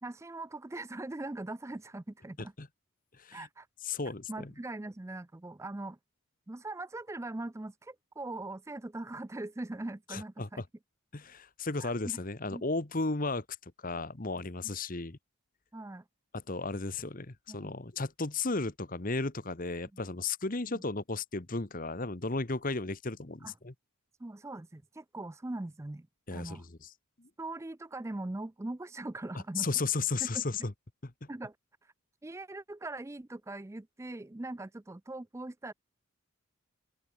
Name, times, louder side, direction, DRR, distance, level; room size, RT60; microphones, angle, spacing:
voice 1, 0.0-2.5 3.3-3.7 4.3-6.0 6.5-10.6 11.8-12.2 12.5-12.6 15.7-16.0 17.5-17.7 20.7-20.8 23.4-23.5 24.2-26.7 27.4-29.7 30.2-30.4 31.3-31.6 31.8-31.9 32.2-35.7, right 2 dB, 15° right, 0.4 m, -41 dB
voice 2, 3.2-3.5 3.8-4.5 10.1-10.5 11.1-13.4 13.8-15.2 16.5-23.7 26.3-26.9 27.2-27.3 29.6-30.7 31.0-31.3, left 3 dB, 40° left, 1.2 m, -34 dB
open air
head